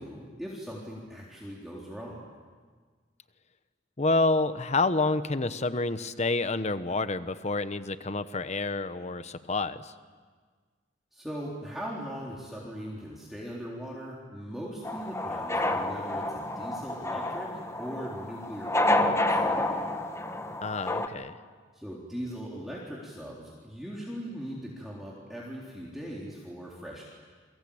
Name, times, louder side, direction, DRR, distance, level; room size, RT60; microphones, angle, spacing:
voice 1, 0.0-2.2 11.1-20.0 21.7-27.0, equal, ahead, -5 dB, 3.8 m, -40 dB
voice 2, 4.0-9.9 20.6-21.4, left 3 dB, 40° left, 12 dB, 1.0 m, -28 dB
sound 1, 14.8-21.1, left 1 dB, 15° left, 1.5 m, -29 dB
29.5 x 23.0 x 8.7 m, 1.5 s
head